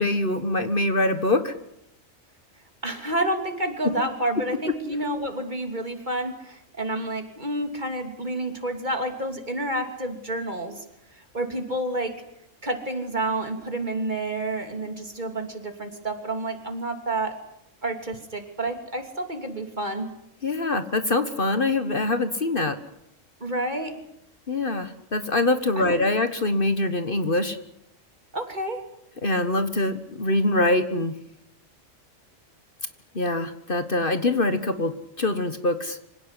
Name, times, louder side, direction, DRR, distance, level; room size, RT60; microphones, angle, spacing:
voice 1, 0.0-1.5 20.4-22.8 24.5-27.6 29.2-31.1 33.1-36.0, left 2 dB, 45° left, 10 dB, 1.5 m, -24 dB
voice 2, 2.8-10.8 11.1-12.1 12.6-17.3 17.8-20.1 23.4-23.9 25.8-25.9 28.3-28.8, right 1 dB, 35° right, 6 dB, 3.1 m, -29 dB
25.5 x 17.5 x 9.9 m, 0.80 s
omnidirectional pair, 1.3 m